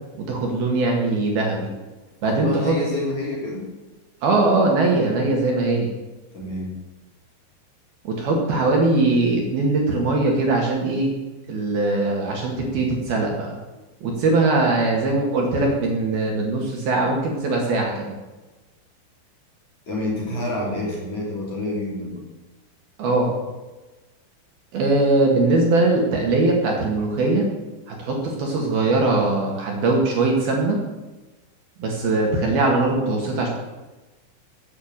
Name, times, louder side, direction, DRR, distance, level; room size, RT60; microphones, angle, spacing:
voice 1, 0.2-1.7 2.2-2.8 4.2-5.9 8.0-11.1 11.5-13.5 14.0-18.2 23.0-23.4 24.7-27.5 27.9-30.8 31.8-33.5, right 2 dB, 55° right, 0 dB, 3.3 m, -21 dB
voice 2, 2.2-3.7 6.3-6.7 19.9-22.2, left 1 dB, 40° left, -3 dB, 3.7 m, -28 dB
15.5 x 8.8 x 7.4 m, 1.2 s
omnidirectional pair, 6.0 m